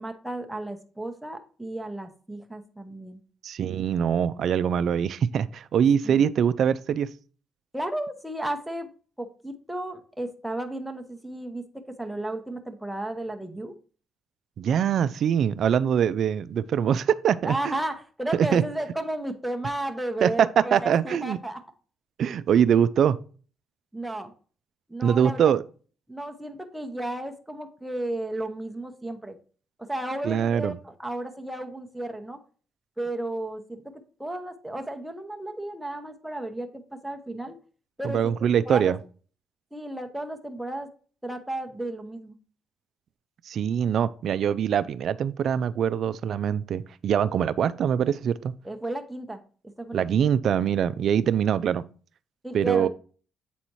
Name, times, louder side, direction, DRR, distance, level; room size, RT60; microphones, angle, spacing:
voice 1, 0.0-3.2 6.0-6.2 7.7-8.9 9.2-11.6 12.0-13.7 17.4-21.6 23.9-24.3 24.9-25.4 26.1-29.4 29.8-32.4 33.0-33.8 34.2-37.6 38.0-38.3 38.7-39.0 39.7-40.9 41.2-42.4 48.6-49.4 49.8-50.2 52.4-52.9, right 1 dB, 5° right, 0.9 m, -33 dB
voice 2, 3.4-7.1 14.6-17.7 18.3-18.6 20.2-21.4 22.2-23.2 25.0-25.6 30.2-30.8 38.0-39.0 43.5-48.5 49.9-51.8 52.5-52.9, right 8 dB, 65° right, 0.4 m, -23 dB
7.7 x 4.1 x 3.0 m
cardioid pair, 90°, 0 cm